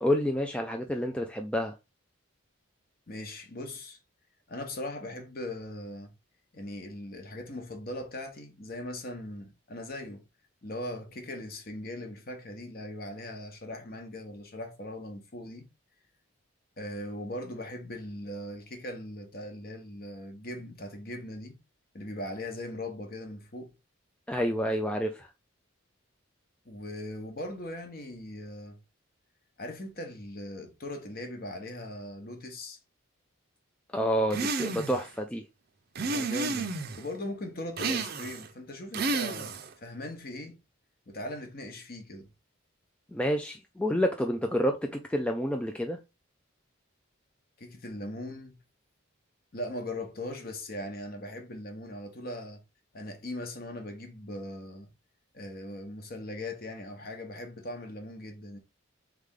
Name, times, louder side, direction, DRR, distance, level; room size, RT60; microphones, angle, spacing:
voice 1, 0.0-1.7 24.3-25.3 33.9-35.4 43.1-46.0, equal, 5° left, 0.3 m, -29 dB
voice 2, 3.1-4.0 4.5-6.1 6.5-10.2 10.6-15.7 16.8-21.6 21.9-23.7 26.6-28.8 29.6-32.8 36.0-40.6 41.1-42.3 47.6-48.6 49.5-52.6 52.9-54.9 55.3-58.6, left 1 dB, 45° left, 0.9 m, -39 dB
sound 1, 34.3-35.1 35.9-37.0 37.8-38.5 38.9-39.7, right 3 dB, 45° right, 0.5 m, -31 dB
3.7 x 3.4 x 3.5 m
head